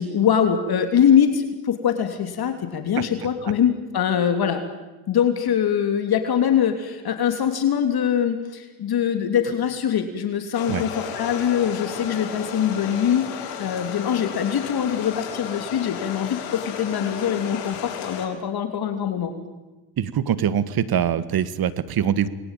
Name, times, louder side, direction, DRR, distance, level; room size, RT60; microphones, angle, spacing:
voice 1, 0.0-4.6 5.1-19.3, left 8 dB, 50° left, 6 dB, 3.4 m, -23 dB
sound 1, 10.5-18.3, left 8 dB, 80° left, 6.8 m, -34 dB
voice 2, 20.0-22.3, right 9 dB, 50° right, 14 dB, 2.0 m, -23 dB
28.5 x 22.0 x 9.3 m, 1.1 s
cardioid pair, 110°, 48 cm